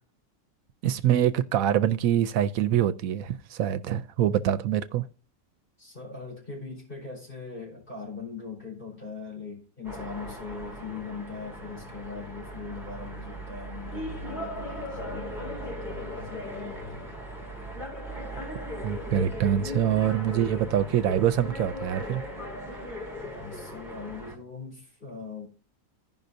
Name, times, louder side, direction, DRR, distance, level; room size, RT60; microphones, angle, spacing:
voice 1, 0.8-5.0 18.8-22.2, right 10 dB, 75° right, 1.0 m, -25 dB
voice 2, 5.8-17.2 23.2-25.5, left 4 dB, 40° left, 4.6 m, -41 dB
sound 1, 9.8-24.3, equal, ahead, 2.2 m, -38 dB
16.0 x 5.5 x 2.6 m
omnidirectional pair, 1.5 m